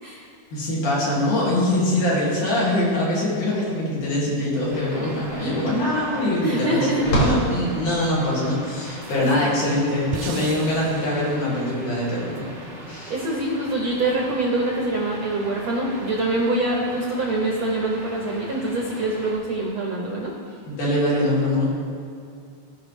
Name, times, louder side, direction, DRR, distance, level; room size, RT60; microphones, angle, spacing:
voice 1, 0.5-12.5 12.8-13.1 20.7-21.7, left 1 dB, 80° left, -6 dB, 3.8 m, -23 dB
sound 1, 4.7-19.4, right 1 dB, 40° right, 0.6 m, -40 dB
sound 2, 4.9-11.0, right 1 dB, 60° left, 3.0 m, -29 dB
voice 2, 6.4-7.2 9.2-9.5 13.1-20.3, right 2 dB, 65° right, -2 dB, 1.3 m, -24 dB
sound 3, 8.0-8.1 9.0-11.7 12.4-12.5, right 8 dB, 80° right, 1.5 m, -39 dB
16.5 x 5.6 x 3.2 m, 2.4 s
omnidirectional pair, 3.5 m